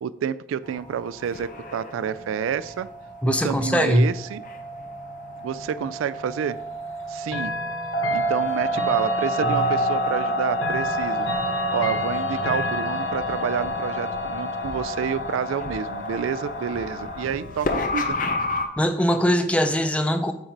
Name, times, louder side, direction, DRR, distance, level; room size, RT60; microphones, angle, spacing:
voice 1, 0.0-2.9 3.2-4.4 5.4-6.6 7.1-7.5 8.1-11.3 11.7-18.2, right 7 dB, 90° right, 16 dB, 0.3 m, -29 dB
sound 1, 0.7-18.7, equal, 45° left, 0.7 m, -30 dB
voice 2, 3.2-4.1 18.8-20.3, equal, 5° left, 7 dB, 0.4 m, -21 dB
Chime / Clock, 7.3-18.1, left 1 dB, 85° left, 1.1 m, -31 dB
8.1 x 3.8 x 4.6 m, 0.83 s
head